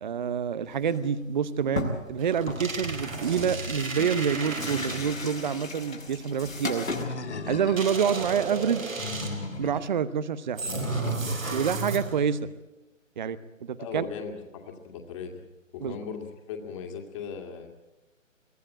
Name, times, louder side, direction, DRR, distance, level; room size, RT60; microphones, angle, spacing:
voice 1, 0.0-6.9 7.5-8.9 9.6-10.6 11.5-12.4 13.2-14.0 15.8-16.0, right 7 dB, 35° right, 15 dB, 0.9 m, -27 dB
sound 1, 0.7-1.1 1.4-1.5 1.8-2.2 2.5-7.0, left 2 dB, 90° left, 6.0 m, -36 dB
sound 2, 2.2-5.3 7.8-9.6 10.6-12.3, right 3 dB, 85° right, 4.5 m, -33 dB
Animal, 6.9-8.1 8.8-9.9 10.7-11.7, left 4 dB, 60° left, 2.6 m, -36 dB
voice 2, 13.8-15.4 15.7-17.7, left 6 dB, 25° left, 3 dB, 2.3 m, -38 dB
23.5 x 16.0 x 8.7 m, 1.0 s
figure-of-eight pair, 150°, 39 cm